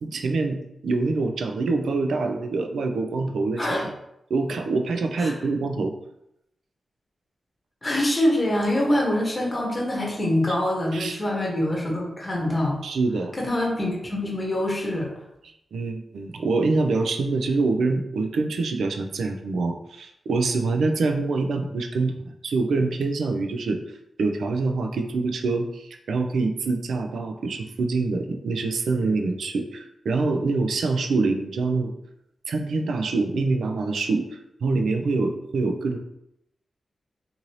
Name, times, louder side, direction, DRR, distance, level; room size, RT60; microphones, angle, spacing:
voice 1, 0.0-3.9 4.3-5.9 10.5-10.6 10.9-11.2 12.8-13.3 15.7-23.8 24.2-31.9 32.5-36.0, right 3 dB, 90° right, 4 dB, 0.3 m, -25 dB
voice 2, 3.6-3.9 5.2-5.3 7.8-12.8 13.3-15.1, left 1 dB, 25° left, -2 dB, 0.9 m, -24 dB
2.7 x 2.5 x 3.0 m, 0.79 s
wide cardioid pair, 90°, 0 cm